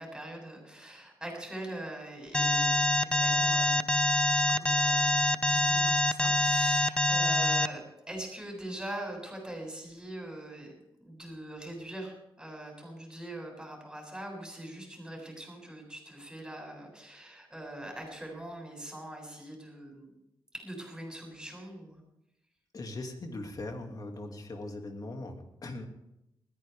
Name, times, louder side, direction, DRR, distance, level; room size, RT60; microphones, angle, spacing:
voice 1, 0.0-3.9 4.4-10.7 11.0-20.1 20.5-22.0, right 1 dB, 5° right, -1 dB, 8.0 m, -42 dB
Alarm, 2.3-7.7, left 1 dB, 10° left, 0.6 m, -25 dB
voice 2, 22.7-25.9, left 2 dB, 45° left, 3 dB, 2.5 m, -40 dB
20.5 x 15.0 x 3.6 m, 0.86 s
cardioid pair, 95°, 9 cm